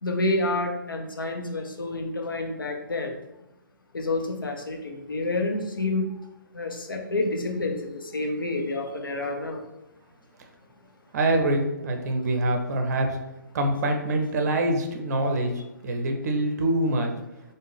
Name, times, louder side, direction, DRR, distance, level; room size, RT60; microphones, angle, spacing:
voice 1, 0.0-3.2 3.9-6.1 6.5-9.6, left 2 dB, 85° left, 3 dB, 0.6 m, -28 dB
voice 2, 11.1-13.2 13.5-15.5 15.8-17.1, right 1 dB, 50° right, 4 dB, 0.6 m, -25 dB
3.5 x 2.1 x 3.3 m, 0.90 s
figure-of-eight pair, 130°, 11 cm